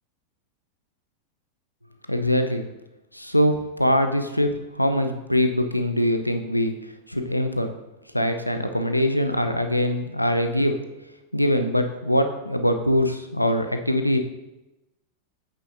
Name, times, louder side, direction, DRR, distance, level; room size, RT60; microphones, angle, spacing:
voice 1, 2.1-2.7 3.1-6.7 7.1-7.7 8.1-10.8 11.3-14.2, left 1 dB, 90° left, 7 dB, 0.5 m, -23 dB
8.1 x 6.4 x 2.6 m, 1.0 s
figure-of-eight pair, 90°, 0 cm